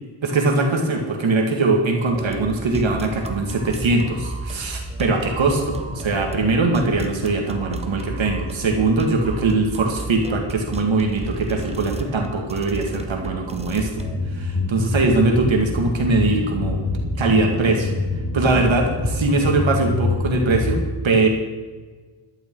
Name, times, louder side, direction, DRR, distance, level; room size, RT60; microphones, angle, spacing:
voice 1, 0.2-16.8 17.2-17.9 18.3-20.8 21.0-21.3, right 3 dB, 70° right, 2 dB, 2.1 m, -21 dB
sound 1, 2.1-14.2, right 2 dB, 15° right, 1.1 m, -33 dB
sound 2, 14.0-20.8, left 2 dB, 50° left, 3.5 m, -26 dB
14.5 x 12.0 x 4.7 m, 1.4 s
wide cardioid pair, 105°, 47 cm